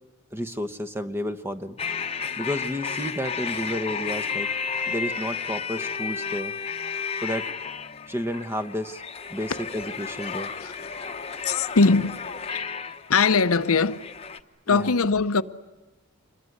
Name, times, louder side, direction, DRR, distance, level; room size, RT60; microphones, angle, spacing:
voice 1, 0.3-1.8 2.4-4.5 4.8-6.5 7.2-7.5 8.1-9.0 9.3-10.5 14.7-14.9, equal, 10° right, 1.0 m, -31 dB
sound 1, 1.8-14.4, left 6 dB, 30° left, 1.0 m, -32 dB
voice 2, 11.4-12.1 12.5-12.6 13.1-14.0 14.7-15.4, left 4 dB, 85° left, 0.9 m, -20 dB
26.5 x 22.0 x 9.6 m
head